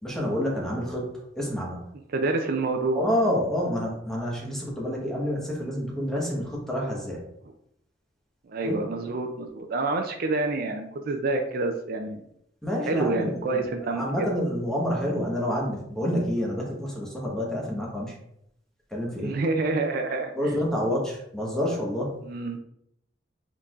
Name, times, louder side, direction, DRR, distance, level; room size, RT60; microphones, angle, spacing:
voice 1, 0.0-1.1 1.4-1.8 2.9-7.2 8.6-8.8 12.6-18.1 18.9-19.4 20.4-22.1, equal, 5° left, -3 dB, 1.1 m, -28 dB
voice 2, 2.1-3.0 8.5-12.2 12.9-14.3 19.2-20.5 22.2-22.6, right 3 dB, 55° right, 4 dB, 0.4 m, -28 dB
4.5 x 3.9 x 2.4 m, 0.75 s
head